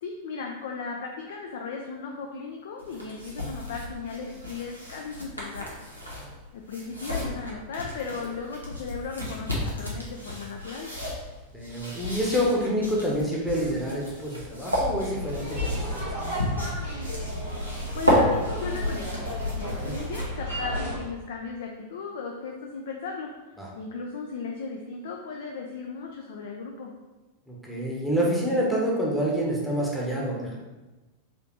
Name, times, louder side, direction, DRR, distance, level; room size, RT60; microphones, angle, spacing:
voice 1, 0.0-5.8 6.5-10.9 17.8-23.3 23.8-26.9, left 4 dB, 60° left, 1 dB, 0.4 m, -36 dB
sound 1, 2.8-20.5, left 1 dB, 90° right, 0.8 m, -32 dB
voice 2, 11.5-16.3 19.8-19.9 23.6-23.7 27.5-30.6, equal, ahead, -5 dB, 0.8 m, -27 dB
sound 2, 15.1-21.0, equal, 90° left, 1.5 m, -33 dB
4.1 x 2.7 x 3.0 m, 1.1 s
figure-of-eight pair, 90°, 0 cm